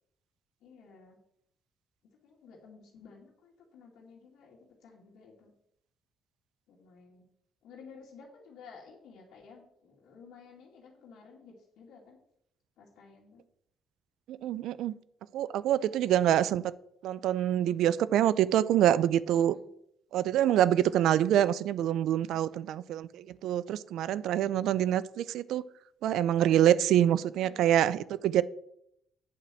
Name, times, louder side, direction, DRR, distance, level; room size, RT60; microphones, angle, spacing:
voice 1, 0.6-1.2 2.2-5.5 6.7-7.3 7.6-12.2 12.8-13.4 15.7-16.2 19.4-19.7 22.3-22.7 27.4-27.7, left 5 dB, 85° left, 2.2 m, -54 dB
voice 2, 14.3-14.9 15.3-16.6 17.0-19.6 20.1-25.6 26.0-28.4, right 11 dB, 80° right, 0.4 m, -26 dB
8.6 x 5.0 x 7.4 m
cardioid pair, 90°, 0 cm